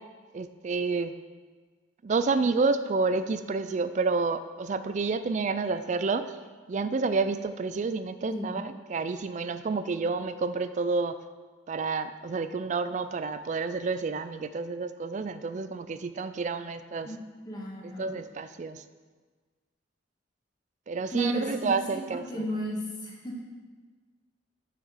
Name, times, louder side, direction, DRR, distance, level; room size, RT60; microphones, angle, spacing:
voice 1, 0.3-1.1 2.0-6.2 6.7-11.2 11.7-17.1 17.8-18.8 20.9-22.4, right 4 dB, 40° right, 12 dB, 0.3 m, -29 dB
voice 2, 17.4-18.2 21.1-23.4, equal, 20° left, -3 dB, 1.5 m, -35 dB
6.1 x 5.9 x 6.3 m, 1.4 s
head